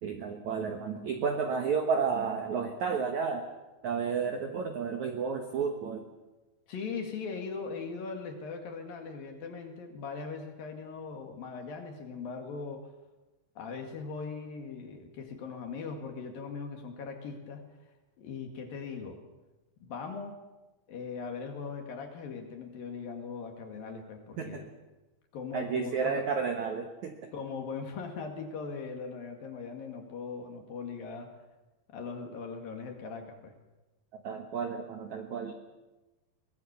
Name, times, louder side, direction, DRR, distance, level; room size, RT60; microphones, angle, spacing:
voice 1, 0.0-3.5 3.8-6.0 24.4-24.6 25.5-27.3 34.1-35.5, right 6 dB, 70° right, 5 dB, 1.8 m, -32 dB
voice 2, 6.7-12.9 13.6-17.6 18.2-19.2 19.8-20.4 20.9-24.7 25.3-26.2 27.3-31.3 31.9-33.6, left 5 dB, 55° left, 4 dB, 3.4 m, -40 dB
23.0 x 19.5 x 7.1 m, 1.1 s
omnidirectional pair, 5.4 m